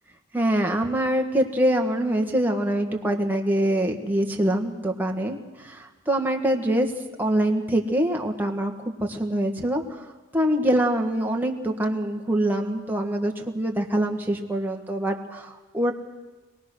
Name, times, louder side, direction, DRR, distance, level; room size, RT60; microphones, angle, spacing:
voice 1, 0.3-6.9 7.2-8.7 9.0-15.9, right 1 dB, 10° right, 2 dB, 1.6 m, -24 dB
26.0 x 19.0 x 6.4 m, 1.2 s
head